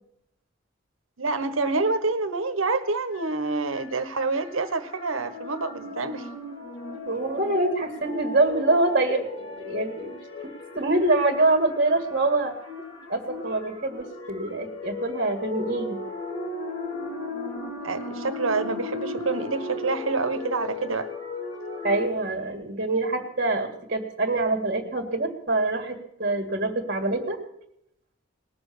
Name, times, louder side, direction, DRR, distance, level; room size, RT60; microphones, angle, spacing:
voice 1, 1.2-6.3 17.8-21.1, right 3 dB, 75° right, 1.3 m, -27 dB
sound 1, 3.1-22.1, left 3 dB, 60° left, 3.0 m, -37 dB
voice 2, 7.1-12.7 13.1-16.0 21.8-27.4, right 2 dB, 45° right, 2.0 m, -25 dB
19.5 x 7.0 x 8.5 m
head